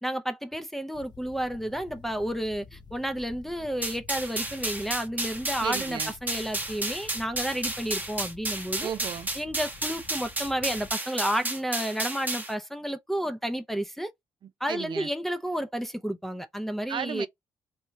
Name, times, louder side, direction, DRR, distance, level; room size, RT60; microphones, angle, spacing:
voice 1, 0.0-8.9 9.4-14.1 14.6-17.3, equal, 5° left, 0.6 m, -31 dB
sound 1, 0.9-10.9, left 5 dB, 45° left, 0.7 m, -50 dB
sound 2, 3.8-12.5, right 2 dB, 15° right, 0.9 m, -32 dB
voice 2, 5.6-6.1 8.8-9.3 14.4-15.1 16.9-17.3, right 8 dB, 50° right, 0.4 m, -34 dB
3.2 x 2.2 x 2.6 m
supercardioid pair, 60°, 10 cm